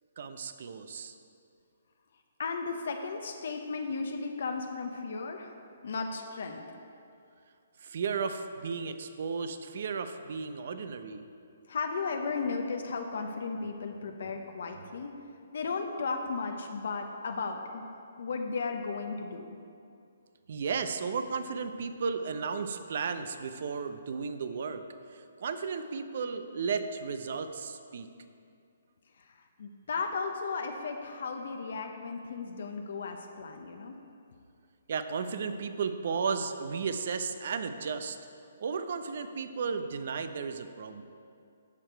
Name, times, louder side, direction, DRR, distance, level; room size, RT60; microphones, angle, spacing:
voice 1, 0.2-1.2 7.8-11.2 20.5-24.8 25.1-28.1 34.9-38.2 38.6-41.0, right 5 dB, 60° right, 9 dB, 0.6 m, -34 dB
voice 2, 2.4-5.5 5.8-6.6 11.7-15.1 15.5-17.9 18.2-19.5 29.2-34.0, left 4 dB, 65° left, 4 dB, 0.8 m, -35 dB
10.5 x 6.7 x 4.5 m, 2.5 s
hypercardioid pair, 150°, 0 cm